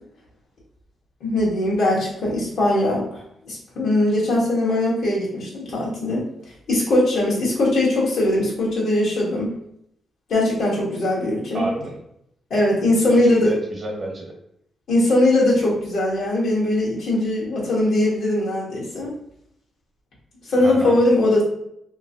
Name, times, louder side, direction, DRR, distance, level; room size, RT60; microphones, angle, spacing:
voice 1, 1.2-3.2 3.5-6.2 6.7-9.5 10.3-11.6 12.5-13.5 14.9-19.1 20.5-21.4, left 1 dB, 75° left, -5 dB, 1.2 m, -20 dB
voice 2, 11.5-12.0 13.1-14.3 20.6-21.0, right 1 dB, 45° right, 0 dB, 1.0 m, -30 dB
2.9 x 2.5 x 2.7 m, 0.74 s
cardioid pair, 90°, 0 cm